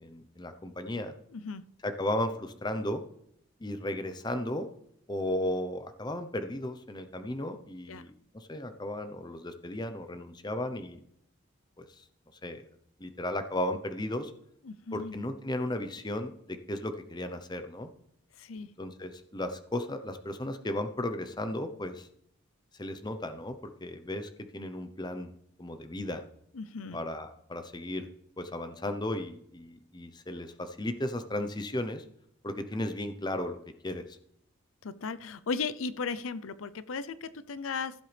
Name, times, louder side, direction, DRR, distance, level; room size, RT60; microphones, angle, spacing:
voice 1, 0.0-1.1 1.8-3.0 3.6-4.7 5.1-11.0 11.8-12.0 12.4-12.6 13.0-14.3 14.9-17.9 18.8-22.1 22.8-25.3 25.6-26.2 26.9-28.1 28.4-32.0 32.4-34.2, left 1 dB, 20° left, 9 dB, 0.7 m, -35 dB
voice 2, 1.3-1.6 7.9-8.0 14.7-15.1 18.4-18.7 26.5-27.0 34.8-37.9, left 4 dB, 85° left, 15 dB, 0.6 m, -36 dB
15.5 x 7.5 x 3.4 m, 0.72 s
head